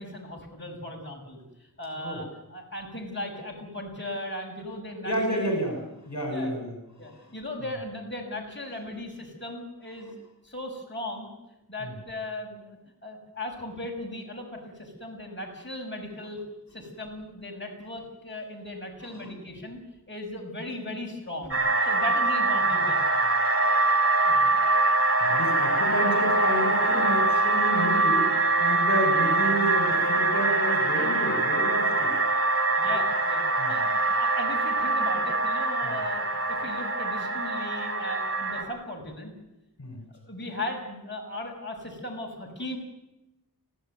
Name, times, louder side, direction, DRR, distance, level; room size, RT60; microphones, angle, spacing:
voice 1, 0.0-1.4 1.8-5.5 6.3-6.5 7.0-10.1 10.4-11.3 11.7-16.4 16.7-19.8 20.1-23.3 25.2-25.3 32.8-33.4 33.7-39.3 40.2-42.8, left 1 dB, 30° left, 0 dB, 6.3 m, -37 dB
voice 2, 5.1-7.3 11.8-11.9 19.1-19.3 24.2-24.6 25.2-32.1 33.6-33.9 35.8-36.0 39.8-40.0, right 1 dB, 50° left, 3 dB, 5.9 m, -31 dB
sound 1, 21.5-38.6, right 2 dB, 40° right, 4.2 m, -24 dB
24.5 x 16.5 x 9.2 m, 0.94 s
wide cardioid pair, 65°, 36 cm